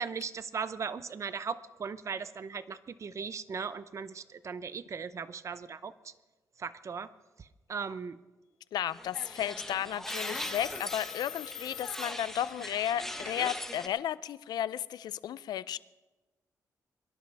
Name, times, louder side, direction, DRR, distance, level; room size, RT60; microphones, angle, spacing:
voice 1, 0.0-6.1 6.6-7.1 7.4-8.2, right 6 dB, 45° right, 14 dB, 0.7 m, -38 dB
voice 2, 8.7-15.8, left 11 dB, 85° left, 17 dB, 0.5 m, -33 dB
sound 1, 8.9-13.9, left 1 dB, 5° left, 1.4 m, -40 dB
Telephone, 10.0-12.8, left 9 dB, 55° left, 2.3 m, -45 dB
23.5 x 11.0 x 3.5 m, 1.1 s
cardioid pair, 85°, 7 cm